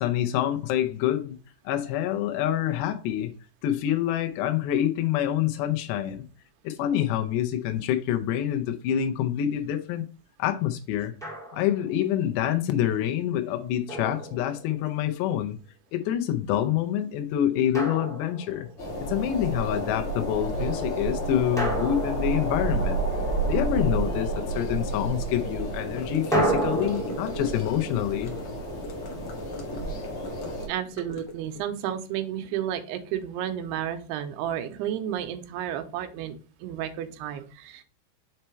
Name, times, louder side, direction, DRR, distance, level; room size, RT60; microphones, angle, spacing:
voice 1, 0.0-1.4 1.7-3.3 3.6-6.2 6.6-10.0 10.4-11.1 11.5-15.6 15.9-18.7 19.1-23.1 23.5-28.3, left 11 dB, 85° left, 2.9 m, -26 dB
Drum, 11.2-11.9 13.9-15.0 17.7-18.9 21.6-23.2 26.3-29.3, right 1 dB, ahead, 0.8 m, -32 dB
sound 1, 18.8-30.7, right 2 dB, 45° left, 1.9 m, -31 dB
Gurgling / Car passing by / Sink (filling or washing), 26.0-31.6, left 4 dB, 65° left, 1.6 m, -41 dB
voice 2, 30.7-37.8, right 10 dB, 85° right, 2.8 m, -32 dB
6.5 x 4.5 x 4.3 m
omnidirectional pair, 4.8 m